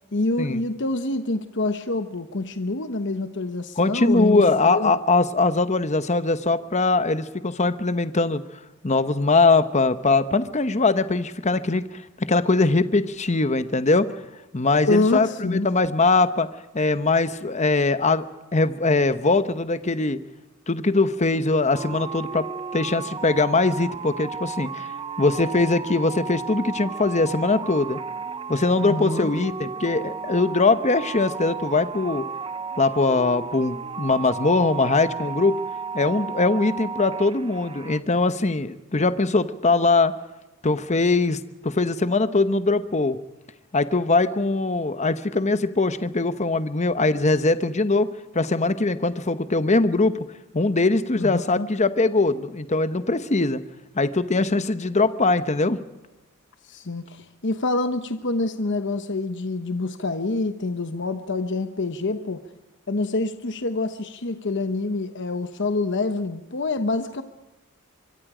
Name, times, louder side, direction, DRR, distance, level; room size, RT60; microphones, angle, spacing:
voice 1, 0.1-4.9 14.8-15.7 28.8-29.3 51.2-51.7 56.6-62.4 62.9-67.2, left 2 dB, 55° left, 9 dB, 1.1 m, -26 dB
voice 2, 3.8-8.4 8.8-14.1 14.5-16.5 16.7-18.3 18.5-20.2 20.7-24.9 25.2-28.0 28.5-32.3 32.8-35.6 35.9-40.1 40.6-43.2 43.7-50.2 50.5-53.6 53.9-55.8, left 3 dB, 30° left, 12 dB, 1.0 m, -21 dB
sound 1, 21.7-38.0, right 5 dB, 25° right, 0.7 m, -34 dB
25.0 x 23.5 x 5.0 m, 1.0 s
head